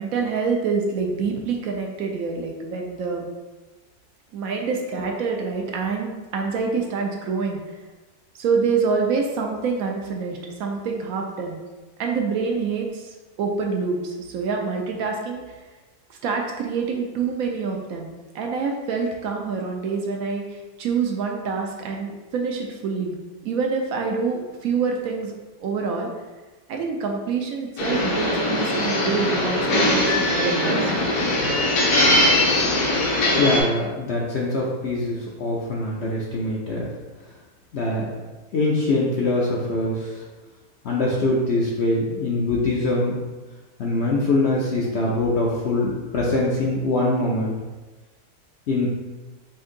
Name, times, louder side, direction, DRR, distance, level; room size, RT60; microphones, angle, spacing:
voice 1, 0.0-3.3 4.3-7.6 8.3-11.6 12.0-15.4 16.2-23.2 23.4-25.3 25.6-26.1 26.7-30.9 32.1-32.2, right 5 dB, 70° right, 1 dB, 1.0 m, -26 dB
sound 1, 27.8-33.6, left 1 dB, 75° left, 1.5 m, -21 dB
voice 2, 33.2-36.9 37.7-38.0 38.5-40.2 40.8-43.2 43.8-47.5 48.7-48.9, left 2 dB, 60° left, -4 dB, 0.7 m, -23 dB
4.4 x 2.7 x 3.7 m, 1.2 s
omnidirectional pair, 1.6 m